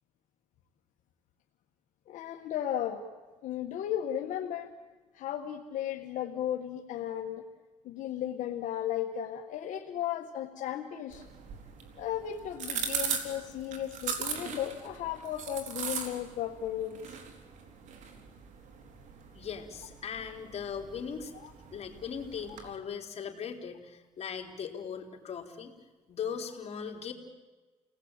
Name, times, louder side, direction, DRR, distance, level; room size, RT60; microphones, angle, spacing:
voice 1, 2.1-3.0 3.4-4.7 5.1-7.4 7.8-11.3 12.0-17.2 21.4-21.5, left 10 dB, 85° left, 2 dB, 1.7 m, -35 dB
sound 1, 11.1-22.7, right 6 dB, 75° right, 3.9 m, -40 dB
voice 2, 19.3-21.3 21.7-25.7 26.1-27.1, left 7 dB, 55° left, 2 dB, 4.0 m, -39 dB
29.5 x 19.0 x 9.1 m, 1.3 s
cardioid pair, 90°, 13 cm